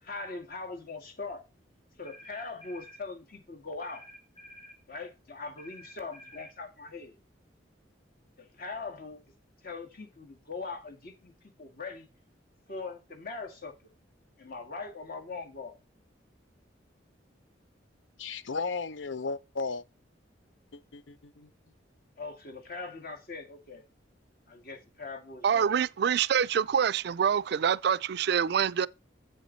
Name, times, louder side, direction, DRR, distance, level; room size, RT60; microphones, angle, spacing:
voice 1, 0.0-1.4 2.0-4.0 4.9-7.2 8.4-9.2 9.6-11.3 11.6-12.1 12.7-13.7 14.4-15.8 22.2-23.8 24.5-25.7, left 3 dB, 50° left, 2.0 m, -41 dB
sound 1, 2.0-3.0 3.8-4.8 5.6-6.6, equal, 30° left, 1.9 m, -50 dB
voice 2, 18.2-19.8 20.7-21.5, left 4 dB, 85° left, 0.6 m, -35 dB
voice 3, 25.4-28.9, right 8 dB, 60° right, 0.3 m, -26 dB
7.8 x 7.3 x 4.0 m
head